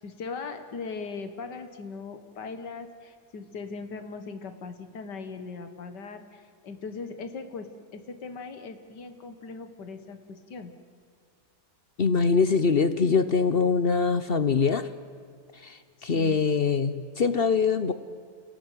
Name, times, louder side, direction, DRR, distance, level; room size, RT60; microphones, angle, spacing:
voice 1, 0.0-10.7 16.0-16.4, left 4 dB, 80° left, 9 dB, 2.1 m, -39 dB
voice 2, 12.0-14.9 15.5-17.9, left 5 dB, 45° left, 13 dB, 0.8 m, -23 dB
29.0 x 17.0 x 9.2 m, 2.2 s
omnidirectional pair, 1.8 m